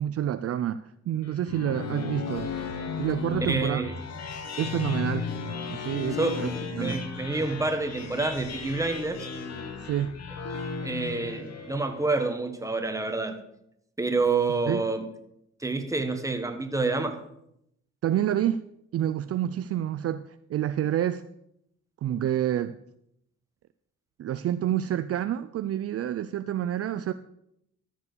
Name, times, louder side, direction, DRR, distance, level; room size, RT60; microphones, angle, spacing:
voice 1, 0.0-2.5 3.0-3.8 4.6-5.3 5.7-7.0 9.8-10.2 14.7-14.8 18.0-18.6 18.9-21.2 22.0-22.8 24.2-27.1, right 11 dB, 50° right, 12 dB, 0.5 m, -28 dB
sound 1, 1.2-12.1, left 5 dB, 60° left, 1.5 m, -35 dB
voice 2, 3.4-3.9 6.1-9.3 10.8-13.4 14.0-15.0 15.6-17.2, right 3 dB, 10° right, 7 dB, 1.4 m, -28 dB
13.5 x 4.8 x 6.8 m, 0.77 s
cardioid pair, 90°, 30 cm